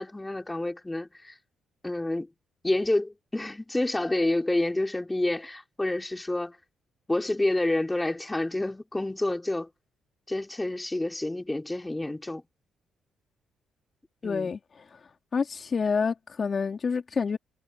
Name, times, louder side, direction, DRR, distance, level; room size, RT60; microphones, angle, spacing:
voice 1, 0.0-1.3 1.8-2.3 2.6-6.6 7.1-9.7 10.3-12.4 14.2-14.5, left 2 dB, 10° left, 5.1 m, -28 dB
voice 2, 14.2-14.6 15.3-17.4, left 5 dB, 40° left, 3.8 m, -27 dB
cardioid pair, 90°, 0 cm